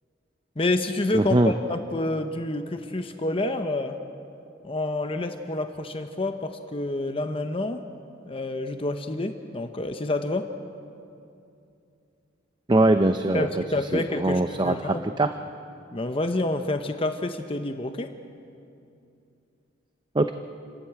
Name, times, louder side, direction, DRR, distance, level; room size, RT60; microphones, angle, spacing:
voice 1, 0.6-4.0 4.6-7.8 8.2-10.5 13.3-15.1 15.9-18.1, left 2 dB, 30° left, 7 dB, 0.8 m, -28 dB
voice 2, 1.1-1.5 12.7-13.5 13.9-15.3 20.1-20.3, right 2 dB, 25° right, 8 dB, 0.6 m, -22 dB
28.5 x 12.5 x 8.8 m, 2.6 s
head